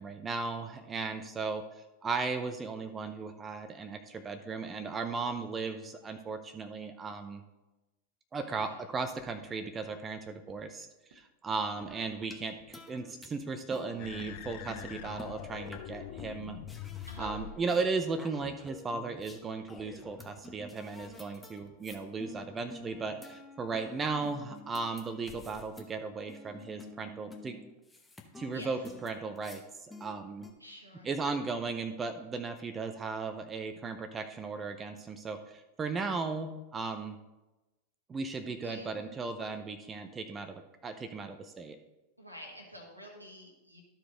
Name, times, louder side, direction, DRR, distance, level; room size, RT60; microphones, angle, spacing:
voice 1, 0.0-1.6 2.0-7.4 8.3-16.6 17.2-27.6 28.4-30.5 31.0-37.2 38.1-41.8, right 4 dB, 20° right, 7 dB, 0.6 m, -36 dB
sound 1, 9.2-9.3 9.8-9.9 10.5-10.6 11.1-11.2 11.8-11.9 12.6-12.7 13.4-13.5 14.2-14.3 16.2-16.3 17.4-17.5 18.0-18.1 18.6-18.7 19.2-19.3 19.8-19.9 20.4-20.5 21.0-21.1 21.6-21.7 22.3-22.4 22.9-23.0, right 5 dB, 55° right, 1.2 m, -58 dB
sound 2, 11.8-12.4 12.7-13.3 13.7-15.9 16.2-16.3 16.7-17.9 18.2-19.4 19.7-26.0 26.3-29.6 29.9-30.5, left 2 dB, 10° left, 1.0 m, -50 dB
sound 3, 14.0-17.6, left 11 dB, 50° left, 0.5 m, -43 dB
voice 2, 17.1-17.4 28.5-28.9 30.6-31.1 38.6-39.1 42.2-43.8, equal, 90° right, 1 dB, 1.7 m, -49 dB
13.0 x 4.8 x 3.8 m, 1.0 s
figure-of-eight pair, 90°, 0 cm